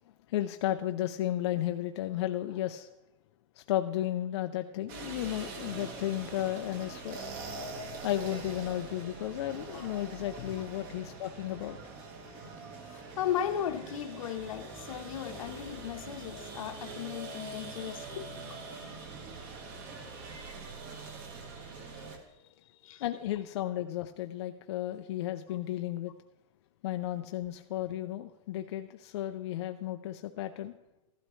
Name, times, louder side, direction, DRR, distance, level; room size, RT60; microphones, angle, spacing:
voice 1, 0.3-2.9 3.6-7.2 8.0-11.8 18.1-18.3 22.6-22.7 23.0-26.1 26.8-30.7, left 13 dB, 55° left, 0.5 m, -34 dB
sound 1, 4.9-22.2, right 3 dB, 35° right, 1.5 m, -43 dB
voice 2, 12.8-18.2 21.9-22.0 22.8-23.0 25.5-25.6, left 10 dB, 80° left, 1.1 m, -36 dB
14.0 x 12.0 x 3.1 m
supercardioid pair, 170°, 17 cm